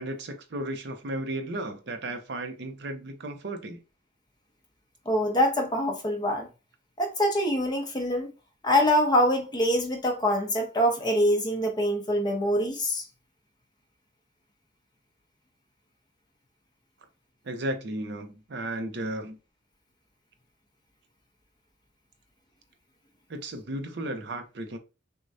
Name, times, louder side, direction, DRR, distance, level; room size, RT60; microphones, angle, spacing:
voice 1, 0.0-3.8 17.4-19.4 23.3-24.8, right 1 dB, 60° right, 0.6 m, -34 dB
voice 2, 5.1-6.5 7.0-8.3 8.6-13.0, equal, 20° left, 0.9 m, -24 dB
6.2 x 2.2 x 2.6 m
head